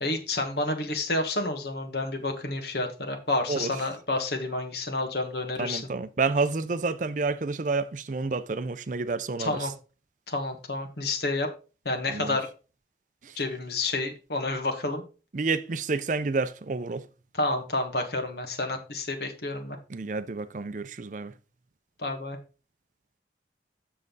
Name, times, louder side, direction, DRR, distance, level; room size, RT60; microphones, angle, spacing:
voice 1, 0.0-5.9 9.4-9.7 10.3-11.5 11.9-12.5 13.4-15.0 17.3-19.8 22.0-22.4, left 2 dB, 65° left, 1.6 m, -29 dB
voice 2, 5.6-9.7 12.1-12.4 13.2-13.3 15.3-17.1 19.9-21.3, right 4 dB, 45° right, 0.5 m, -29 dB
7.5 x 6.7 x 3.9 m
head